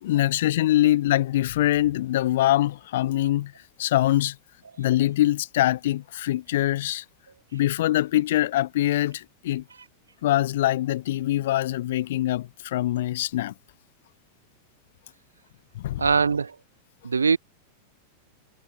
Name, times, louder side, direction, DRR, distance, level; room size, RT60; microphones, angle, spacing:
voice 1, 0.0-3.5 3.8-4.4 4.8-7.0 7.5-9.6 10.2-13.5 15.8-16.0, left 14 dB, 55° left, 0.4 m, -23 dB
voice 2, 16.0-16.6 17.0-17.4, right 5 dB, 75° right, 0.6 m, -21 dB
figure-of-eight pair, 90°, 0 cm